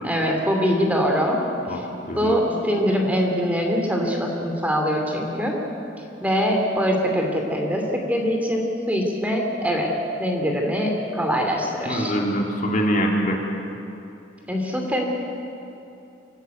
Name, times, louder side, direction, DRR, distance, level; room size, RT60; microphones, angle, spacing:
voice 1, 0.0-1.4 1.7-1.8 2.2-5.6 6.2-9.9 10.2-12.1 14.5-15.1, equal, 10° right, 1 dB, 2.7 m, -23 dB
voice 2, 1.7-2.4 11.8-13.4, equal, 45° left, 0 dB, 3.0 m, -24 dB
25.0 x 14.5 x 9.3 m, 2.7 s
head